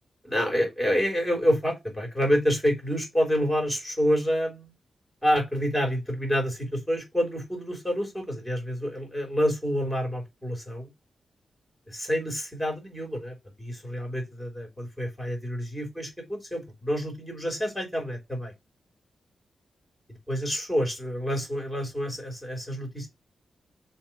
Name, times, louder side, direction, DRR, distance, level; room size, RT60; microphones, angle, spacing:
voice 1, 0.2-4.7 5.2-10.9 11.9-18.5 20.3-23.1, equal, ahead, 3.4 m, -28 dB
7.0 x 3.0 x 5.8 m
wide cardioid pair, 140°, 0 cm